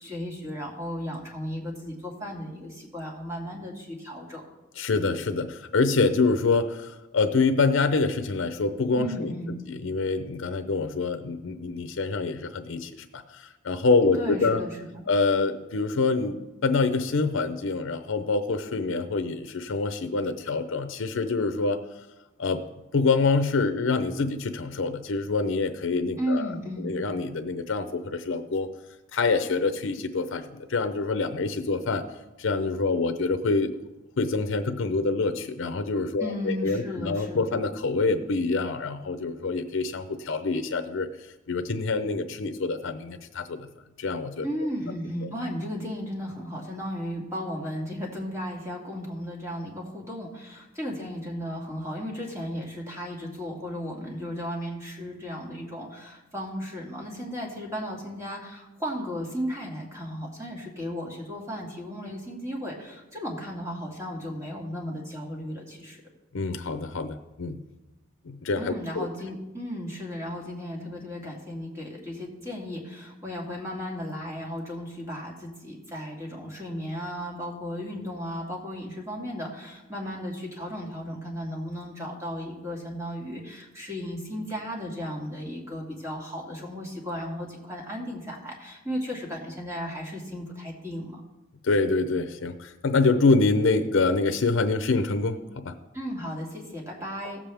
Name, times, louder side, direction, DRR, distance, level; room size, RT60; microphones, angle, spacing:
voice 1, 0.0-4.5 9.0-9.6 14.1-15.0 26.2-26.9 36.2-37.5 44.4-66.0 68.6-91.2 95.9-97.4, equal, 15° right, -1 dB, 2.1 m, -35 dB
voice 2, 4.8-9.3 9.7-14.6 15.1-21.8 22.4-22.6 22.9-26.5 26.8-28.7 29.1-32.0 32.4-33.8 34.2-41.1 41.5-43.7 44.0-44.5 66.3-67.6 68.2-69.1 91.6-95.7, left 3 dB, 75° left, 7 dB, 0.6 m, -26 dB
16.5 x 7.4 x 3.4 m, 1.0 s
head